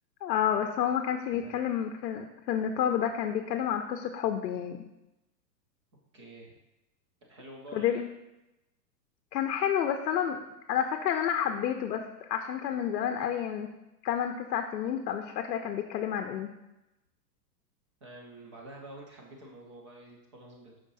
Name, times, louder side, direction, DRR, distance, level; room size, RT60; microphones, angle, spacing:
voice 1, 0.2-4.8 7.7-8.1 9.3-10.4 10.7-13.7 14.0-16.5, left 9 dB, 70° left, 5 dB, 0.7 m, -30 dB
voice 2, 6.1-6.6 7.2-8.0 18.0-20.7, right 1 dB, 20° right, -1 dB, 0.4 m, -48 dB
5.0 x 3.6 x 5.4 m, 0.94 s
hypercardioid pair, 160°, 50 cm